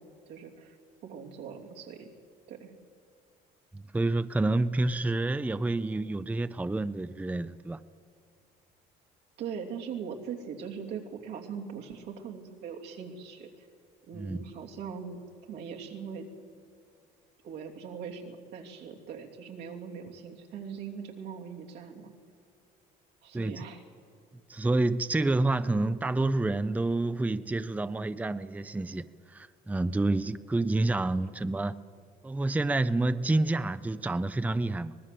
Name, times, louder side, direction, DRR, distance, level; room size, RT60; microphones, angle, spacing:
voice 1, 0.3-0.8 1.0-2.1 2.5-2.7 9.4-13.7 14.1-15.2 15.5-16.3 17.4-22.1 23.2-23.8, right 6 dB, 85° right, 2.9 m, -41 dB
voice 2, 3.7-7.8 14.1-14.4 23.3-23.6 24.5-31.8 32.2-35.0, right 2 dB, 10° right, 0.6 m, -28 dB
24.5 x 20.0 x 7.7 m
cardioid pair, 110°, 17 cm